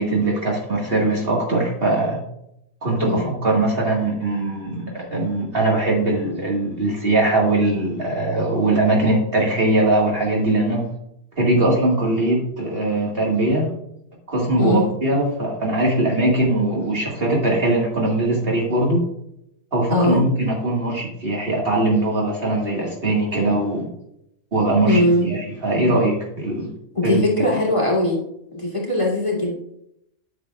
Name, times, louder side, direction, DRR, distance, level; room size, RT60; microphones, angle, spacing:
voice 1, 0.0-2.2 2.8-10.8 11.4-13.7 14.3-19.0 19.7-23.9 24.5-26.7 27.0-27.2, right 2 dB, 50° right, -3 dB, 2.0 m, -21 dB
voice 2, 3.0-3.3 14.6-14.9 19.9-20.2 24.9-25.3 26.9-28.2 28.5-29.6, left 1 dB, 25° left, -5 dB, 2.2 m, -20 dB
11.0 x 6.5 x 2.4 m, 0.79 s
omnidirectional pair, 1.3 m